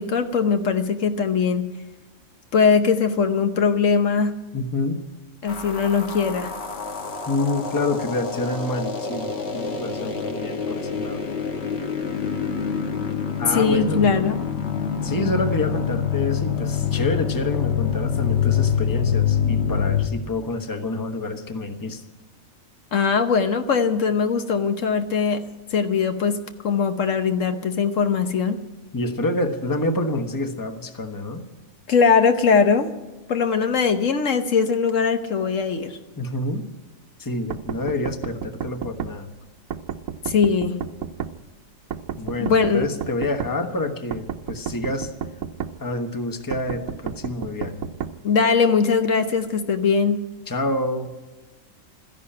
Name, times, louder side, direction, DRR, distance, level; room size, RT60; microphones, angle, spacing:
voice 1, 0.0-1.7 2.5-4.3 5.4-6.5 13.5-14.3 22.9-25.4 25.7-26.4 26.6-28.6 31.9-32.9 33.3-36.0 40.2-40.8 42.4-42.9 48.2-50.2, left 5 dB, 70° left, 8 dB, 1.3 m, -20 dB
voice 2, 4.5-5.0 7.3-11.2 13.4-14.1 15.0-22.0 28.9-31.4 36.2-36.7 37.2-39.3 42.2-45.1 45.8-47.9 50.5-51.1, left 2 dB, 15° left, 7 dB, 1.1 m, -27 dB
sound 1, 5.5-20.1, left 7 dB, 50° left, 1.6 m, -26 dB
sound 2, 37.5-39.1 39.7-41.3 41.9-43.5 44.1-45.7 46.5-48.1, right 8 dB, 80° right, 1.2 m, -31 dB
13.5 x 11.0 x 8.7 m, 1.2 s
omnidirectional pair, 1.4 m